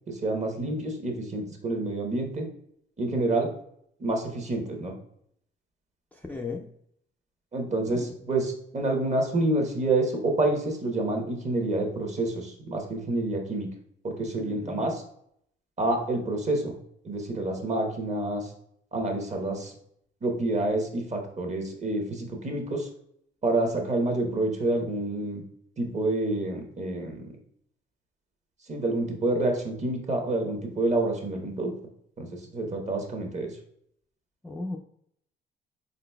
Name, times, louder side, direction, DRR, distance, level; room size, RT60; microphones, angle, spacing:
voice 1, 0.1-2.5 3.0-3.5 4.0-4.9 7.5-13.7 14.0-15.0 15.8-16.7 17.0-18.5 18.9-19.7 20.2-22.9 23.4-25.4 25.8-27.2 28.7-31.7 32.2-33.5, right 2 dB, 35° right, 2 dB, 1.0 m, -28 dB
voice 2, 6.1-6.6 7.8-8.3 14.2-14.8 34.4-34.8, left 3 dB, 10° left, 1 dB, 0.3 m, -37 dB
3.9 x 3.9 x 2.2 m, 0.69 s
cardioid pair, 90°, 20 cm